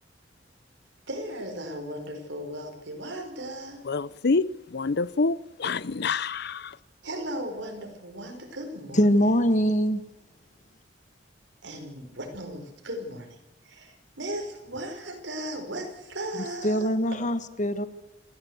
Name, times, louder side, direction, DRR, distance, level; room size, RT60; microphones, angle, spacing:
voice 1, 1.1-3.8 7.0-9.2 11.6-13.4 13.6-16.9, right 1 dB, 75° right, 5.1 m, -36 dB
voice 2, 3.8-6.8, left 4 dB, 60° left, 0.7 m, -27 dB
voice 3, 8.9-10.0 16.6-17.9, equal, 40° left, 1.4 m, -23 dB
27.0 x 14.5 x 8.1 m
head